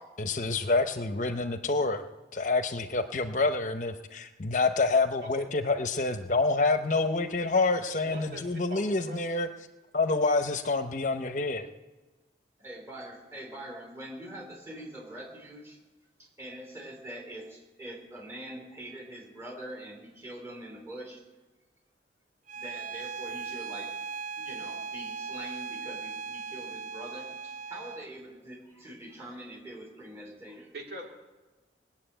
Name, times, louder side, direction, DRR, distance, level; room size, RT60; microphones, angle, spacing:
voice 1, 0.2-2.0 2.3-9.5 9.9-11.7, left 3 dB, 45° left, 9 dB, 0.7 m, -27 dB
voice 2, 8.0-9.2 30.7-31.0, right 1 dB, 60° right, -1 dB, 3.1 m, -42 dB
voice 3, 12.6-15.8 16.2-21.2 22.5-23.9 24.4-30.7, right 1 dB, 15° right, 0 dB, 3.6 m, -44 dB
Bowed string instrument, 22.5-28.1, right 5 dB, 45° right, 0.4 m, -38 dB
19.5 x 7.4 x 8.9 m, 1.2 s
head